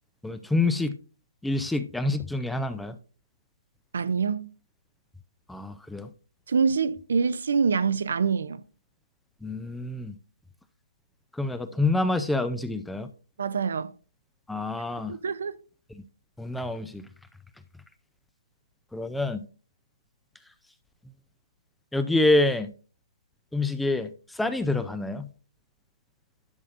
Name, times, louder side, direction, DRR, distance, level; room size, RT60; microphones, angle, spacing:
voice 1, 0.2-1.0 1.4-3.0 5.5-6.1 9.4-10.1 11.3-13.1 14.5-15.2 15.9-16.0 16.4-17.1 18.9-19.5 21.9-22.7 23.5-25.3, left 2 dB, 5° left, 0.4 m, -27 dB
voice 2, 3.9-4.5 6.5-8.6 13.4-13.9 15.1-15.6, right 5 dB, 60° right, 0.5 m, -25 dB
11.0 x 6.5 x 2.5 m
figure-of-eight pair, 135°, 0 cm